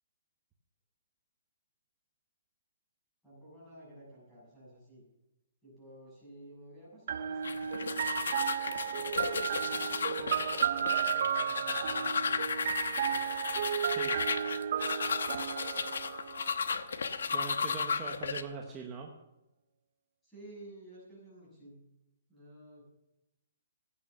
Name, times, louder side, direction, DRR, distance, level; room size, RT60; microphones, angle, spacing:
voice 1, 3.2-5.0 5.6-9.2 9.5-13.3 20.2-21.8 22.3-22.8, right 1 dB, 5° left, -8 dB, 6.4 m, -53 dB
sound 1, 7.1-16.9, right 9 dB, 40° right, 0.5 m, -33 dB
sound 2, 7.4-18.4, left 5 dB, 80° left, 1.0 m, -34 dB
voice 2, 13.8-14.2 17.3-19.1, right 6 dB, 15° right, 1 dB, 0.9 m, -42 dB
15.5 x 8.8 x 6.9 m, 0.95 s
hypercardioid pair, 175°, 0 cm